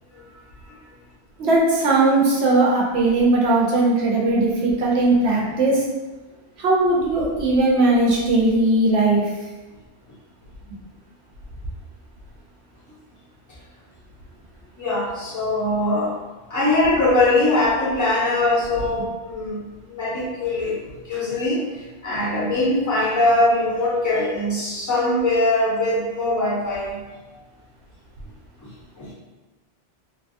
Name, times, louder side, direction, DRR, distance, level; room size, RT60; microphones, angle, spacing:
voice 1, 1.4-5.8 6.6-9.3, right 2 dB, 65° right, -4 dB, 0.8 m, -18 dB
voice 2, 14.8-16.1 16.5-27.0 28.6-28.7 29.0-29.1, left 2 dB, 20° left, -7 dB, 0.5 m, -22 dB
2.5 x 2.3 x 2.4 m, 1.2 s
omnidirectional pair, 1.2 m